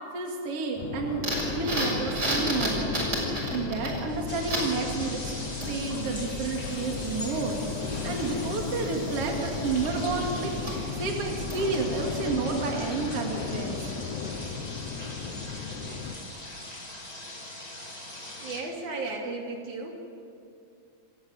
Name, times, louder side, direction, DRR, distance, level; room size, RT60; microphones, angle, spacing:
voice 1, 0.1-1.2 1.5-2.9 3.5-5.2 5.7-7.6 8.0-10.5 11.0-13.8, right 4 dB, 55° right, 1 dB, 3.0 m, -30 dB
sound 1, 0.8-16.2, left 5 dB, 80° left, 2.7 m, -35 dB
sound 2, 1.2-12.0, equal, 30° right, 7.0 m, -34 dB
sound 3, 4.1-18.6, left 1 dB, 15° left, 2.5 m, -41 dB
voice 2, 18.4-20.0, right 3 dB, 80° right, 0 dB, 4.3 m, -34 dB
28.5 x 14.5 x 8.2 m, 2.4 s
omnidirectional pair, 3.4 m